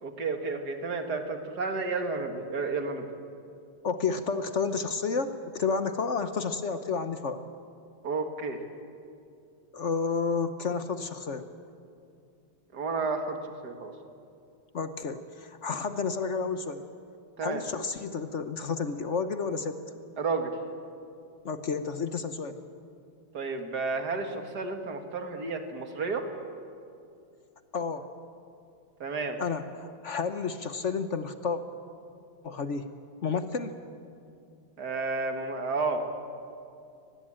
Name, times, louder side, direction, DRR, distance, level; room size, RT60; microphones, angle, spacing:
voice 1, 0.0-3.1 8.0-8.6 12.7-13.4 13.6-13.9 17.4-17.6 20.2-20.5 23.3-26.3 29.0-29.4 34.8-36.0, right 4 dB, 50° right, 5 dB, 2.3 m, -31 dB
voice 2, 3.8-7.4 9.7-11.5 14.7-16.8 17.4-19.8 21.4-22.6 27.7-28.0 29.4-31.6 32.4-32.9 33.2-33.7, left 5 dB, 50° left, 9 dB, 0.8 m, -31 dB
23.5 x 20.0 x 8.8 m, 2.5 s
omnidirectional pair, 2.4 m